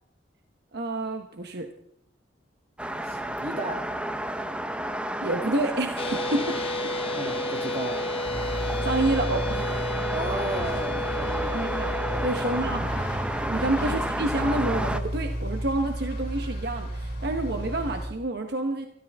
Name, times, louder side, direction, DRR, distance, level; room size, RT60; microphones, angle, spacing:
voice 1, 0.7-1.7 5.2-6.6 6.8-7.1 8.8-9.9 11.5-11.9 12.2-12.9 13.5-18.9, right 2 dB, 60° right, 1.1 m, -28 dB
sound 1, 2.8-15.0, right 1 dB, 5° right, 0.7 m, -32 dB
voice 2, 3.0-4.0 7.1-8.2 10.1-11.7 12.1-12.6 13.4-13.8, right 1 dB, 35° right, 2.6 m, -35 dB
sound 2, 6.0-12.7, left 2 dB, 30° left, 1.0 m, -32 dB
sound 3, 8.3-18.1, equal, 55° left, 6.2 m, -33 dB
26.5 x 13.5 x 3.6 m
head